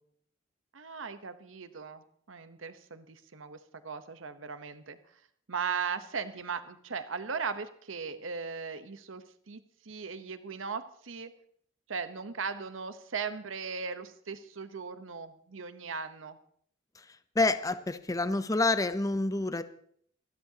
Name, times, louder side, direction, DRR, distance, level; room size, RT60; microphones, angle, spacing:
voice 1, 0.7-3.6 3.8-5.0 5.5-11.3 11.9-16.4, right 5 dB, 75° right, 11 dB, 1.0 m, -38 dB
voice 2, 17.4-19.6, left 2 dB, 15° left, 11 dB, 0.6 m, -28 dB
26.5 x 13.0 x 2.9 m, 0.62 s
head